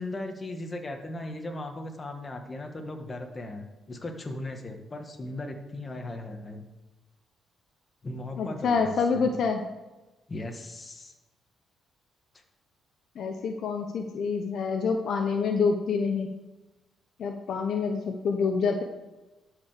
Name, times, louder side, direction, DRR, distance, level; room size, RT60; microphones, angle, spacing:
voice 1, 0.0-6.7 8.0-9.3 10.3-11.1, left 2 dB, 30° left, 4 dB, 1.7 m, -37 dB
voice 2, 8.4-9.6 13.2-16.3 17.2-18.8, left 5 dB, 65° left, 5 dB, 1.0 m, -27 dB
11.5 x 5.1 x 6.8 m, 1.1 s
cardioid pair, 90°, 0 cm